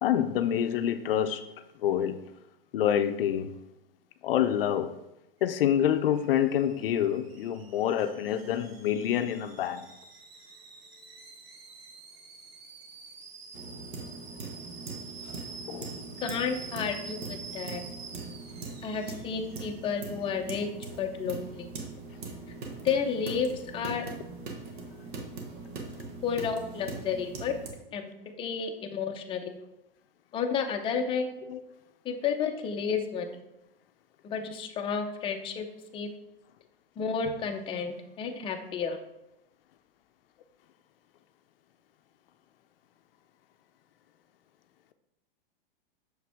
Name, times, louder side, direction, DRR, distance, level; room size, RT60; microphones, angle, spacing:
voice 1, 0.0-1.5 1.8-2.2 2.7-3.5 4.2-4.9 5.4-9.9 15.7-15.9 16.8-16.9 31.5-31.6, left 10 dB, 70° left, 10 dB, 0.6 m, -27 dB
Alarm / Boiling, 5.4-20.2, right 4 dB, 90° right, 1.1 m, -48 dB
sound 1, 13.5-27.7, right 3 dB, 60° right, 1.4 m, -41 dB
voice 2, 16.2-17.8 18.8-20.7 21.0-21.7 22.8-24.1 26.2-27.5 27.9-28.1 28.4-29.6 30.3-31.3 32.0-33.3 34.2-35.6 35.9-36.1 37.0-39.0, left 6 dB, 20° left, 3 dB, 0.6 m, -31 dB
6.5 x 4.8 x 3.4 m, 0.89 s
hypercardioid pair, 125°, 29 cm